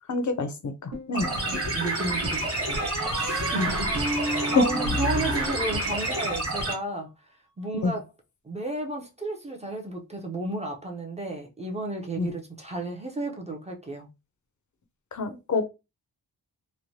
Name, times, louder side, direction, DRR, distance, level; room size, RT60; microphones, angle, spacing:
voice 1, 0.1-1.3 3.6-3.7 4.4-4.6 7.8-7.9 12.2-12.3 15.1-15.6, left 3 dB, 50° left, 0.5 m, -26 dB
sound 1, 0.9-1.8 2.7-6.2, equal, 75° right, 1.2 m, -32 dB
voice 2, 1.1-2.8 3.1-7.1 7.6-8.0 8.4-14.1, right 2 dB, 20° right, 0.4 m, -33 dB
sound 2, 1.1-6.7, right 1 dB, 35° right, 1.1 m, -29 dB
3.1 x 2.1 x 2.6 m
wide cardioid pair, 140°, 39 cm